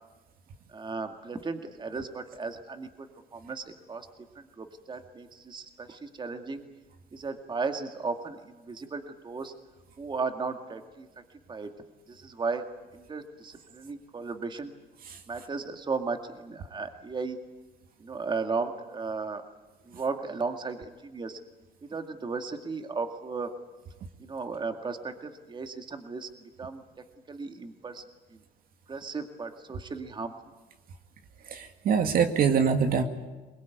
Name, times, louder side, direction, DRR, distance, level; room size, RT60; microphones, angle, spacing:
voice 1, 0.7-3.1 3.3-4.1 4.4-6.6 7.1-9.5 10.0-11.1 11.5-11.7 12.1-12.6 12.9-14.7 15.3-17.4 18.0-19.4 19.9-21.4 21.9-23.5 24.2-26.3 26.6-26.8 27.3-28.0 28.9-30.3, right 4 dB, 25° right, 6 dB, 2.1 m, -35 dB
voice 2, 31.5-33.0, right 6 dB, 60° right, 6 dB, 2.1 m, -24 dB
23.0 x 21.0 x 9.4 m, 1.2 s
cardioid pair, 110°, 17 cm